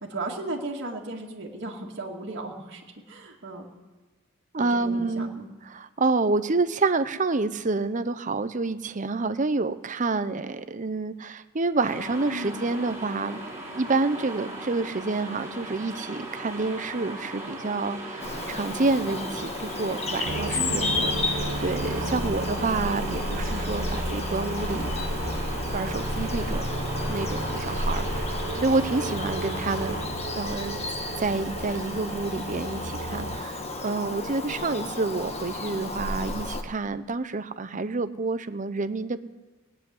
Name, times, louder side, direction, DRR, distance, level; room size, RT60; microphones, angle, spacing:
voice 1, 0.0-3.7 4.6-5.4 12.2-12.6 20.5-20.9, right 2 dB, 55° right, -3 dB, 2.2 m, -36 dB
voice 2, 4.5-5.3 5.6-13.4 13.7-24.9 25.7-26.7 27.1-30.0 30.3-30.8 31.2-39.2, right 3 dB, 40° right, 12 dB, 0.7 m, -28 dB
sound 1, 11.8-30.0, right 1 dB, 15° right, 4.1 m, -38 dB
Bird vocalization bird call bird song, 18.2-36.6, left 2 dB, 30° left, 1.3 m, -32 dB
sound 2, 20.2-33.4, right 2 dB, 80° right, 1.1 m, -34 dB
18.0 x 7.8 x 9.6 m, 1.3 s
head